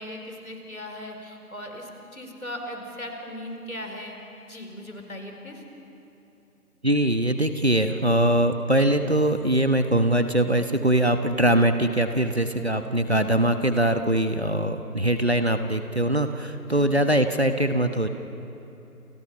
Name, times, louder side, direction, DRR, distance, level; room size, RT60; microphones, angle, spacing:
voice 1, 0.0-4.2 4.5-5.6 16.7-17.0, left 1 dB, 65° left, 3 dB, 4.8 m, -38 dB
voice 2, 6.8-18.1, right 1 dB, 45° right, 8 dB, 1.2 m, -22 dB
29.0 x 28.0 x 5.8 m, 2.9 s
figure-of-eight pair, 175°, 46 cm